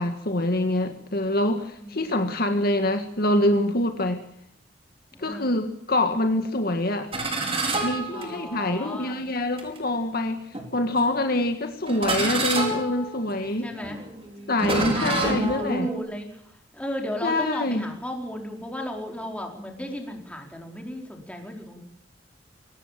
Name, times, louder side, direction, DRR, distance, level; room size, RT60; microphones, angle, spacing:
voice 1, 0.0-4.2 5.2-7.1 7.8-10.4 10.7-13.7 14.5-15.9 17.2-17.9, left 1 dB, 55° left, 6 dB, 1.9 m, -25 dB
voice 2, 1.7-2.1 5.1-5.5 8.1-9.2 10.6-10.9 13.6-14.0 14.6-21.8, left 1 dB, 5° left, 2 dB, 4.5 m, -35 dB
sound 1, 7.1-8.8 9.6-9.8 10.5-11.1 11.9-16.0, right 2 dB, 30° right, 4.9 m, -28 dB
23.0 x 19.0 x 7.6 m, 0.68 s
head